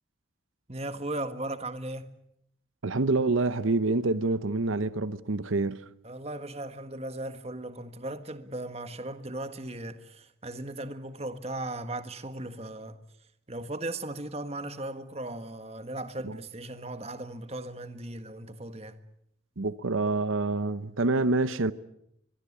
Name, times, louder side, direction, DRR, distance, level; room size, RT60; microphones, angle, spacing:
voice 1, 0.7-2.1 6.0-13.0 13.5-19.0, right 1 dB, 30° right, 1.6 m, -37 dB
voice 2, 2.8-5.8 16.2-16.3 19.6-21.7, right 3 dB, 85° right, 0.9 m, -27 dB
24.0 x 22.0 x 8.5 m
head